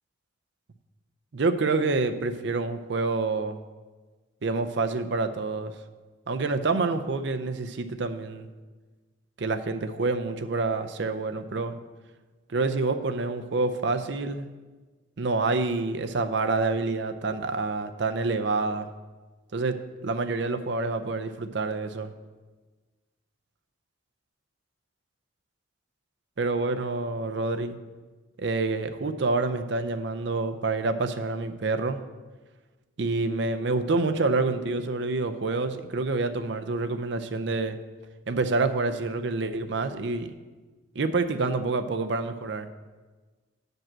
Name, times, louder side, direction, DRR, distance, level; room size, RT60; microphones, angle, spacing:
voice 1, 1.3-3.6 4.4-5.7 6.3-8.5 9.4-11.8 12.5-14.5 15.2-18.9 19.5-19.8 20.0-22.1 26.4-27.8 28.4-32.0 33.0-37.8 38.3-40.3 41.0-42.7, right 3 dB, 60° right, 8 dB, 0.5 m, -27 dB
7.2 x 5.4 x 7.4 m, 1.3 s
head